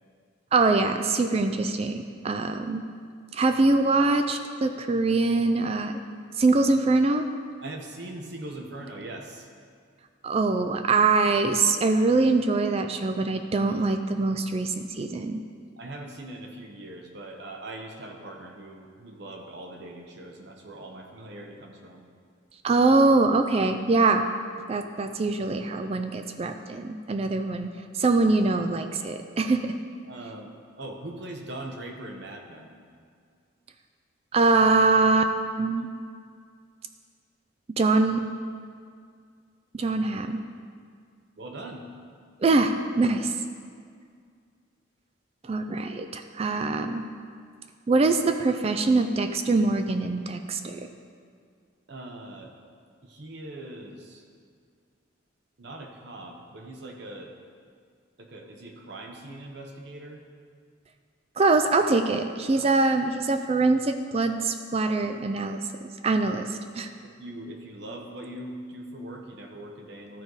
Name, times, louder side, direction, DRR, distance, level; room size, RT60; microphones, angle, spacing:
voice 1, 0.5-2.8 3.3-6.0 6.4-7.3 10.2-15.4 22.6-24.3 24.7-27.7 27.9-29.7 34.3-35.9 37.8-38.2 39.7-40.4 42.4-43.3 45.5-47.1 47.9-50.8 61.4-65.6 66.0-66.5 66.7-66.9, right 3 dB, 30° right, 7 dB, 0.3 m, -23 dB
voice 2, 7.6-9.5 15.8-22.0 30.1-30.5 30.8-32.8 41.4-41.8 51.9-52.5 53.0-54.2 55.6-57.3 58.2-60.2 62.5-62.7 67.0-70.2, right 1 dB, 60° right, 2 dB, 1.0 m, -41 dB
13.0 x 4.7 x 4.0 m, 2.1 s
head